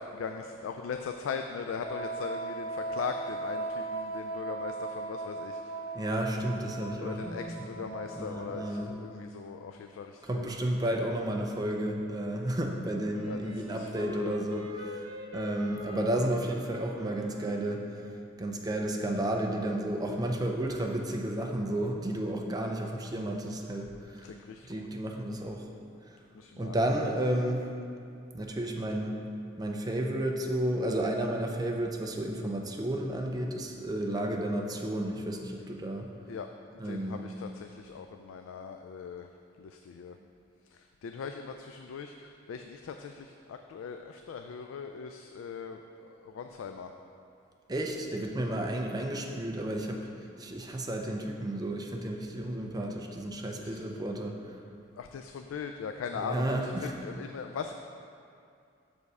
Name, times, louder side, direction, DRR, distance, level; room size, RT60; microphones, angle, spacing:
voice 1, 0.0-5.8 7.0-10.5 13.2-14.4 24.2-24.9 26.3-26.8 36.3-36.5 36.8-39.3 39.6-40.2 40.7-46.9 53.6-53.8 55.0-57.7, left 5 dB, 90° left, 5 dB, 0.3 m, -40 dB
Wind instrument woodwind instrument, 1.8-9.1, right 2 dB, 45° left, 0.6 m, -38 dB
voice 2, 5.9-7.9 8.2-8.9 10.2-15.1 15.3-17.9 18.4-24.3 24.6-25.7 26.1-26.2 26.6-27.7 28.3-29.2 29.6-36.1 36.8-37.3 47.7-50.1 50.4-54.6 56.1-57.0, right 1 dB, 20° right, 1 dB, 0.5 m, -32 dB
Wind instrument woodwind instrument 2, 13.1-18.2, left 1 dB, 75° right, 1.1 m, -44 dB
6.6 x 5.2 x 4.7 m, 2.5 s
head